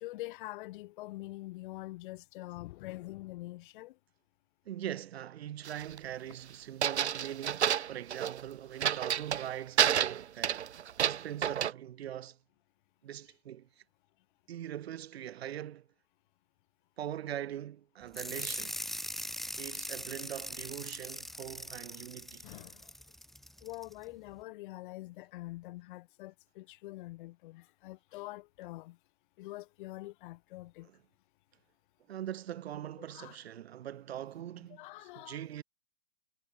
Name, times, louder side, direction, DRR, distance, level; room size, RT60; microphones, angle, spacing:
voice 1, 0.0-3.9 22.4-22.7 23.6-28.9 29.4-30.9 33.1-33.4 34.8-35.4, left 18 dB, 50° left, 3.5 m, -45 dB
voice 2, 4.6-10.7 11.0-12.4 13.0-13.8 14.5-15.9 17.0-18.8 19.6-22.4 32.1-35.6, right 11 dB, 70° right, 1.3 m, -42 dB
sound 1, 5.6-6.0 6.8-8.4 8.8-9.5 9.8-11.7, right 9 dB, 90° right, 0.8 m, -29 dB
sound 2, 18.1-23.9, equal, ahead, 2.7 m, -41 dB
hypercardioid pair, 125°, 32 cm